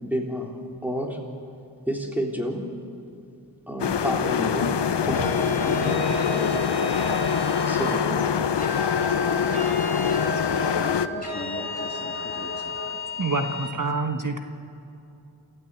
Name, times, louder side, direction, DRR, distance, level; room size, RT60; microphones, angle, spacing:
voice 1, 0.0-1.2 1.9-2.7 3.7-5.4 5.6-6.7 7.7-8.3, equal, 5° right, 0 dB, 3.6 m, -30 dB
sound 1, 3.8-11.1, left 8 dB, 80° left, 0.7 m, -24 dB
sound 2, 4.8-12.9, equal, 70° right, 7.8 m, -35 dB
sound 3, 5.1-8.0 8.6-13.7, left 3 dB, 20° left, 7.9 m, -34 dB
voice 2, 8.8-12.8 13.4-13.5, left 2 dB, 35° left, 2 dB, 2.4 m, -40 dB
voice 3, 13.2-14.4, right 3 dB, 50° right, 5 dB, 1.3 m, -26 dB
27.5 x 15.0 x 8.3 m, 2.7 s
wide cardioid pair, 55°, 41 cm